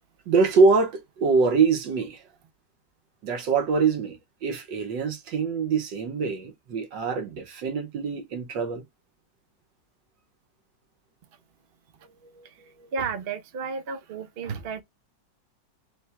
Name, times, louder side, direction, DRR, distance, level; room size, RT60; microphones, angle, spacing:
voice 1, 0.3-2.2 3.2-8.8, right 4 dB, 85° right, 1.7 m, -24 dB
voice 2, 12.9-14.8, right 5 dB, 60° right, 0.6 m, -32 dB
4.4 x 2.3 x 4.3 m
omnidirectional pair, 1.9 m